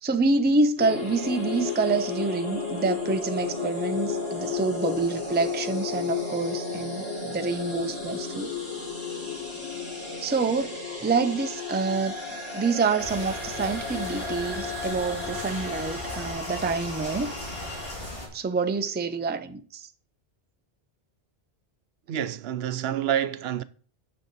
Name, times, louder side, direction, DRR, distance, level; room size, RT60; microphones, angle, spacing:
voice 1, 0.0-8.5 10.2-12.2 12.5-17.3 18.3-19.9, right 4 dB, 15° right, 0.4 m, -27 dB
sound 1, 0.8-17.9, left 5 dB, 50° left, 4.4 m, -33 dB
sound 2, 13.0-18.3, left 1 dB, 65° left, 3.0 m, -37 dB
voice 2, 22.1-23.6, right 10 dB, 75° right, 0.8 m, -28 dB
9.3 x 6.5 x 3.9 m
omnidirectional pair, 1.0 m